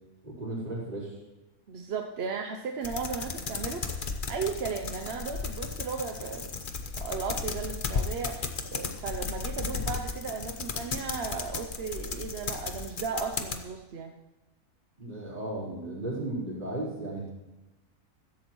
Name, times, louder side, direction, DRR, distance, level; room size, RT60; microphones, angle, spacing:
voice 1, 0.2-1.1 15.0-17.3, right 2 dB, 35° right, -7 dB, 4.2 m, -35 dB
voice 2, 1.7-6.5 7.0-8.4 8.7-14.1, right 5 dB, 55° right, 4 dB, 0.8 m, -35 dB
sound 1, 2.8-13.6, left 5 dB, 40° left, 0.9 m, -35 dB
15.0 x 15.0 x 3.1 m, 1.1 s
omnidirectional pair, 1.6 m